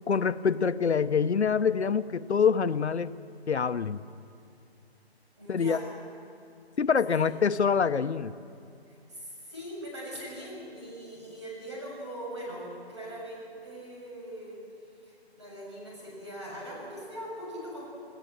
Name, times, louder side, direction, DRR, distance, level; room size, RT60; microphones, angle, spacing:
voice 1, 0.1-3.2 3.5-4.0 5.5-5.8 6.8-8.3, left 6 dB, 90° left, 13 dB, 0.9 m, -25 dB
voice 2, 5.4-5.8 7.2-7.3 8.9-14.6 15.0-17.9, equal, 25° right, -4 dB, 7.5 m, -41 dB
29.5 x 17.0 x 7.8 m, 2.5 s
hypercardioid pair, 180°, 32 cm